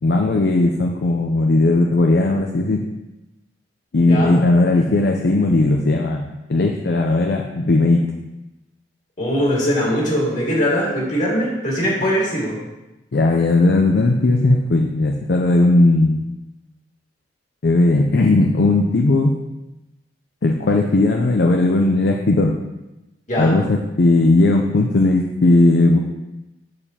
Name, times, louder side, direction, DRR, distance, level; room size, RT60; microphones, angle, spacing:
voice 1, 0.0-2.9 3.9-8.0 13.1-16.3 17.6-19.3 20.4-22.6 23.4-26.0, left 2 dB, 65° left, 2 dB, 0.5 m, -17 dB
voice 2, 4.1-4.4 9.2-12.6 23.3-23.6, equal, 45° left, -4 dB, 2.2 m, -21 dB
7.0 x 6.5 x 2.9 m, 1.0 s
head